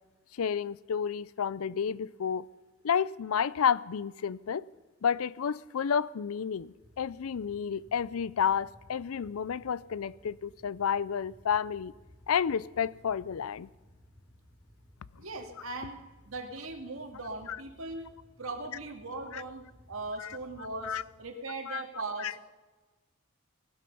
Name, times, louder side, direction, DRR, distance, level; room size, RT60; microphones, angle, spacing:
voice 1, 0.3-2.5 2.8-4.6 5.0-11.9 12.3-13.7 17.5-17.6 19.3-19.4 20.2-20.4 20.8-21.0 21.7-21.8 22.2-22.3, left 7 dB, 80° left, 0.4 m, -31 dB
sound 1, 6.8-21.2, equal, 20° left, 3.1 m, -59 dB
voice 2, 15.2-18.1 18.4-22.4, right 3 dB, 75° right, 2.1 m, -39 dB
18.5 x 12.0 x 5.4 m
head